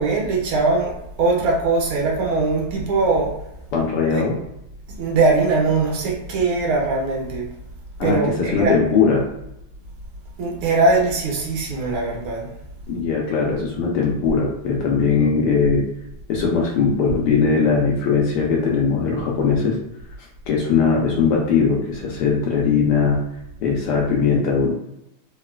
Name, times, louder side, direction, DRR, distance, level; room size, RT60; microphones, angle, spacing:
voice 1, 0.0-3.3 4.1-4.2 5.0-7.5 8.0-8.8 10.4-12.5, right 3 dB, 85° right, -2 dB, 1.6 m, -21 dB
voice 2, 3.7-4.4 8.0-9.3 12.9-15.8 16.3-19.8 20.5-23.2 23.6-24.7, left 5 dB, 75° left, -2 dB, 1.0 m, -20 dB
3.8 x 2.2 x 2.2 m, 0.82 s
omnidirectional pair, 2.3 m